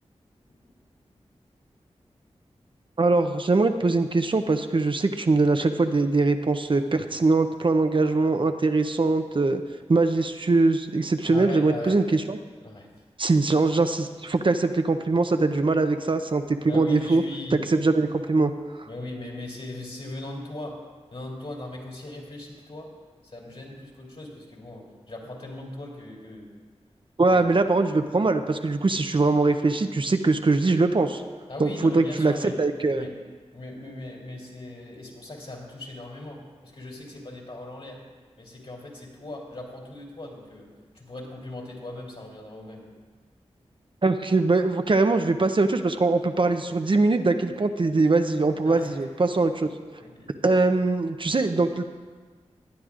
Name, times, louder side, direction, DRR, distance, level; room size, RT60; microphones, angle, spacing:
voice 1, 3.0-9.6 9.9-12.4 13.2-17.2 17.5-18.5 18.8-18.9 27.2-31.2 31.6-32.3 32.6-33.0 44.0-49.7 50.4-51.8, right 3 dB, 45° right, 7 dB, 0.6 m, -22 dB
voice 2, 11.3-12.0 12.6-12.9 16.7-17.6 18.8-20.8 21.1-22.9 23.2-26.5 27.3-27.4 31.5-32.6 32.9-33.1 33.5-38.0 38.4-40.7 40.9-42.8 48.6-49.1 50.0-50.3, left 1 dB, 55° left, -2 dB, 3.2 m, -39 dB
18.0 x 10.5 x 2.5 m, 1.5 s
cardioid pair, 40°, 12 cm